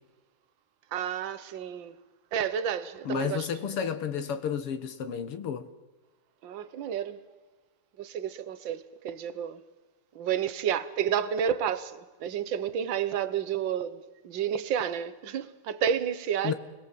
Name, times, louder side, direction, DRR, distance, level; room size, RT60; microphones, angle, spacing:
voice 1, 0.9-1.9 2.3-3.5 6.4-7.2 8.0-9.6 10.2-16.5, right 8 dB, 60° right, 1.9 m, -30 dB
voice 2, 3.0-5.7 16.4-16.5, left 7 dB, 90° left, 2.5 m, -31 dB
30.0 x 21.5 x 7.8 m
omnidirectional pair, 2.4 m